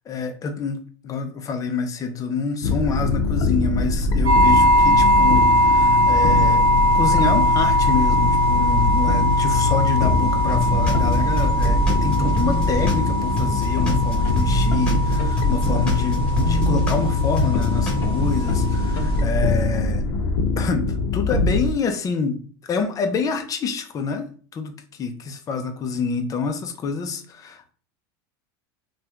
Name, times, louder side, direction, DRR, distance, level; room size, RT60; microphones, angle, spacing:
voice 1, 0.1-6.7 6.9-20.0 20.6-22.4 22.7-27.7, left 5 dB, 25° left, 0.5 m, -27 dB
sound 1, 2.6-21.7, left 2 dB, 70° left, 0.6 m, -22 dB
sound 2, 4.2-19.2, equal, 40° right, 1.0 m, -21 dB
sound 3, 10.5-13.1 13.4-17.1 17.4-18.0, equal, 10° left, 1.1 m, -28 dB
2.7 x 2.3 x 3.4 m
supercardioid pair, 125°, 13 cm